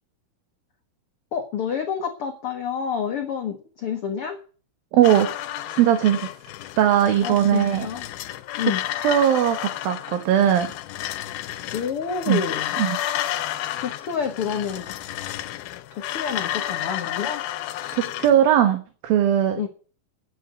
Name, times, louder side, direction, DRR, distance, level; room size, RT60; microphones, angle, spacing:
voice 1, 1.3-4.4 7.2-8.1 8.6-8.8 11.7-12.8 13.8-15.2 15.9-17.4 19.6-19.7, left 7 dB, 75° left, 4 dB, 1.3 m, -28 dB
voice 2, 4.9-5.3 5.8-6.3 6.8-7.8 9.0-10.7 12.3-12.4 12.8-13.0 17.9-19.7, right 10 dB, 75° right, 7 dB, 2.9 m, -19 dB
sound 1, 5.0-18.4, left 13 dB, 90° left, 2.6 m, -31 dB
9.9 x 7.9 x 8.0 m, 0.40 s
omnidirectional pair, 4.2 m